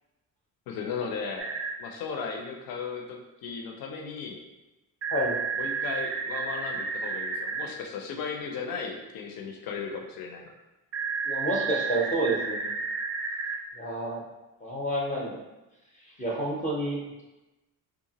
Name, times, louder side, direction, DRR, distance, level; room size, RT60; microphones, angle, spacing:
voice 1, 0.7-1.5 1.8-4.4 5.5-10.5, left 5 dB, 75° left, 2 dB, 0.5 m, -36 dB
sound 1, 1.4-1.7 5.0-7.6 10.9-13.5, right 5 dB, 40° right, 0.4 m, -31 dB
voice 2, 11.3-12.7 13.7-14.2 14.6-15.4 16.2-17.2, right 1 dB, 20° left, -3 dB, 0.5 m, -29 dB
2.8 x 2.3 x 2.7 m, 1.0 s
cardioid pair, 115°, 36 cm